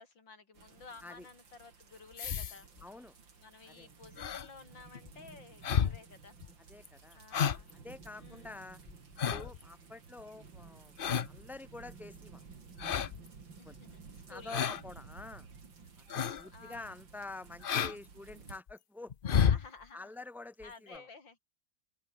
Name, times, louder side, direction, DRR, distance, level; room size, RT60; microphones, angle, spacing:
voice 1, 0.0-2.7 3.4-6.4 7.1-7.7 8.1-8.6 13.6-14.6 16.5-16.9 19.4-20.1 20.6-21.4, left 4 dB, 85° left, 4.2 m, -53 dB
sound 1, 0.5-18.6, right 5 dB, 85° right, 3.7 m, -54 dB
sound 2, 2.2-2.8 4.2-4.5 4.9-5.1 5.6-6.0 6.4-6.5 6.8-6.9 7.3-7.7 8.0-8.1 8.9-9.6 11.0-11.4 12.8-13.3 14.5-14.8 15.2-15.3 16.1-16.5 16.7-16.8 17.6-18.0 18.3-18.7 19.1-19.7 20.6-20.7 20.9-21.0, left 8 dB, 55° left, 0.6 m, -31 dB
voice 2, 2.8-3.2 3.7-3.9 5.8-5.9 6.6-7.2 7.7-8.8 9.3-12.8 13.6-13.8 14.3-15.5 16.0-19.5 19.9-21.1, left 3 dB, ahead, 2.0 m, -48 dB
open air
omnidirectional pair, 2.0 m